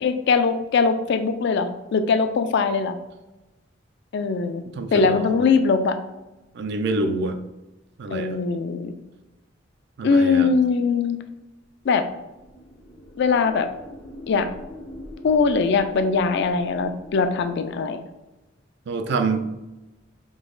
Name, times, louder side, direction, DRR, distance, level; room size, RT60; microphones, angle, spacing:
voice 1, 0.0-3.0 4.1-4.6 4.9-6.0 8.1-9.0 10.0-11.2 11.9-12.0 13.2-13.7 14.3-14.5 15.2-18.0, left 4 dB, 60° left, 8 dB, 0.3 m, -21 dB
voice 2, 4.8-5.2 6.5-7.4 8.0-8.3 10.0-10.5 18.9-19.4, right 3 dB, 60° right, 8 dB, 0.4 m, -26 dB
sound 1, 12.1-18.1, equal, 85° left, 1.1 m, -43 dB
3.9 x 2.8 x 3.8 m, 1.0 s
head